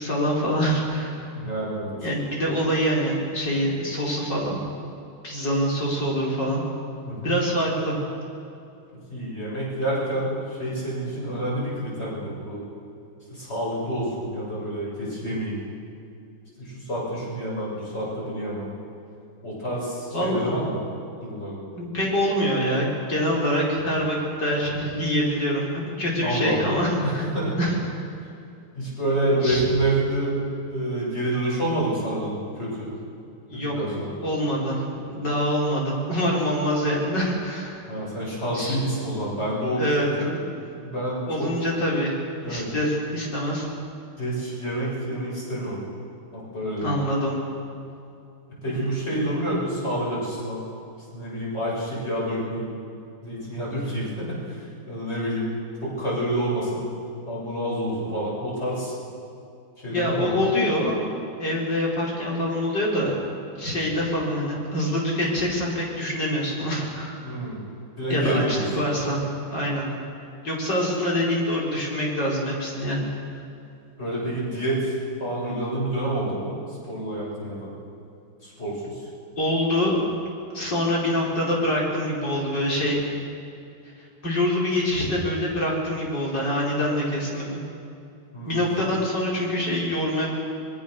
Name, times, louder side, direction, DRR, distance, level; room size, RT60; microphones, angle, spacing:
voice 1, 0.0-1.3 1.9-4.6 5.2-6.7 7.2-8.0 20.1-20.6 21.8-27.3 27.6-27.8 29.2-29.7 33.5-33.8 34.2-37.9 38.5-38.8 39.8-40.1 41.3-42.1 42.4-43.7 46.8-47.4 48.7-49.3 59.9-61.0 61.4-63.2 63.5-67.3 68.1-69.2 69.5-69.9 70.4-73.1 79.4-79.9 80.5-83.0 84.2-87.6 88.5-90.3, equal, 50° left, -4 dB, 5.6 m, -25 dB
voice 2, 1.3-1.9 7.1-7.4 9.1-12.6 13.3-15.6 16.6-18.7 19.4-20.8 21.2-21.6 26.2-26.7 27.0-27.6 28.7-30.4 30.7-32.9 33.5-34.1 37.9-40.3 40.8-41.5 42.4-42.7 44.2-45.8 46.3-46.9 48.6-50.6 51.1-52.7 53.2-54.6 54.9-55.5 55.8-56.9 57.3-58.9 59.8-60.5 67.2-67.6 68.0-68.6 74.0-74.9 75.2-76.5 76.8-77.7 78.4-78.9 88.3-88.6, right 1 dB, 30° left, -5 dB, 7.9 m, -28 dB
25.5 x 21.5 x 6.8 m, 2.6 s
omnidirectional pair, 2.3 m